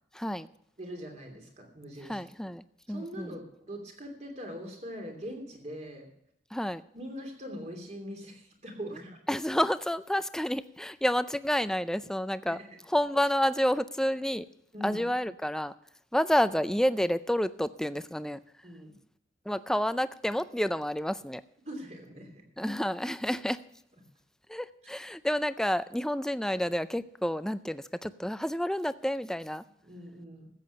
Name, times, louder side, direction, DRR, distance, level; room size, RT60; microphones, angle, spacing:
voice 1, 0.1-0.5 2.1-3.4 6.5-6.8 9.3-12.6 12.9-14.5 14.8-15.7 16.1-18.4 19.5-21.4 22.6-23.6 24.5-29.6, equal, 5° left, 13 dB, 0.4 m, -29 dB
voice 2, 0.8-2.2 2.9-6.1 6.9-9.1 12.5-12.6 14.7-15.0 18.6-18.9 21.7-22.4 29.8-30.5, equal, 40° right, 3 dB, 3.0 m, -42 dB
14.0 x 8.2 x 6.7 m, 0.73 s
head